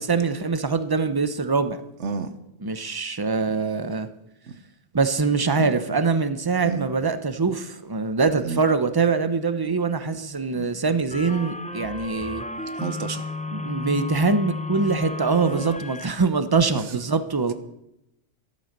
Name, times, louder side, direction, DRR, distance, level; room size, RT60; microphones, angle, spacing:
voice 1, 0.1-1.8 2.6-4.1 4.9-12.4 13.5-17.5, right 4 dB, 20° right, 0.8 m, -23 dB
voice 2, 2.0-2.3 4.5-4.6 5.6-5.8 6.6-6.9 8.4-8.6 10.5-10.7 12.8-13.3 15.4-15.8 16.7-17.1, right 5 dB, 75° right, 1.4 m, -31 dB
sound 1, 11.1-16.2, left 3 dB, 10° left, 0.5 m, -33 dB
12.5 x 12.5 x 6.7 m
omnidirectional pair, 1.2 m